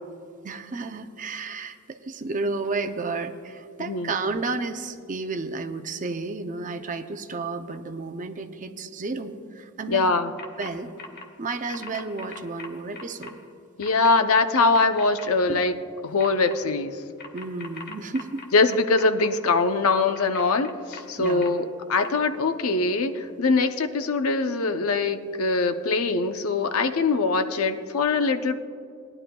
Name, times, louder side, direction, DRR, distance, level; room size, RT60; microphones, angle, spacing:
voice 1, 0.4-10.0 10.6-10.9 11.4-13.4 15.5-15.6 17.3-18.4 21.2-21.4, right 3 dB, 35° right, 8 dB, 0.5 m, -32 dB
voice 2, 3.8-4.1 9.9-10.3 13.8-15.7 16.0-17.0 18.5-28.5, left 3 dB, 70° left, 9 dB, 0.6 m, -22 dB
sound 1, 10.4-10.7 11.0-11.2 11.7-13.3 13.8-14.1 14.5-15.3 16.2-16.5 17.2-19.3 20.1-21.5 22.0-22.1, left 4 dB, 45° left, 1.2 m, -40 dB
19.0 x 11.0 x 2.3 m, 2.5 s
head